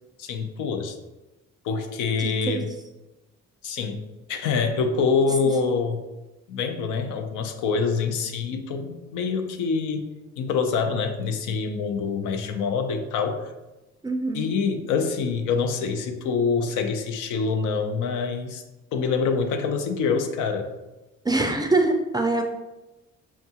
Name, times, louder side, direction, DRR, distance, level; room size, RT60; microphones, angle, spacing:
voice 1, 0.2-1.0 1.6-2.7 3.6-4.0 4.3-6.0 6.5-13.5 14.3-18.6 18.9-20.7, left 5 dB, 85° left, 6 dB, 0.5 m, -25 dB
voice 2, 2.2-2.6 14.0-14.5 21.3-22.4, right 2 dB, 15° right, 4 dB, 0.3 m, -23 dB
4.6 x 2.3 x 2.7 m, 1.0 s
cardioid pair, 90°, 30 cm